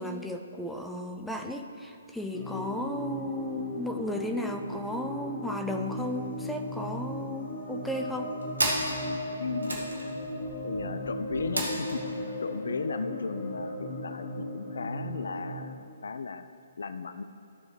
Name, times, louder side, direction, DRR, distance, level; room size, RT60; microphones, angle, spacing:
voice 1, 0.0-8.3, left 1 dB, 5° left, 3 dB, 0.5 m, -34 dB
sound 1, 2.3-15.8, left 1 dB, 40° left, 1.3 m, -37 dB
sound 2, 5.8-6.1 6.4-6.5 6.7-7.4 7.9-12.0, right 1 dB, 75° right, 1.9 m, -34 dB
voice 2, 9.4-9.8 10.6-12.0 12.4-16.5 16.8-17.2, left 4 dB, 65° left, 11 dB, 0.4 m, -35 dB
13.5 x 6.8 x 3.3 m, 2.6 s
figure-of-eight pair, 130°, 0 cm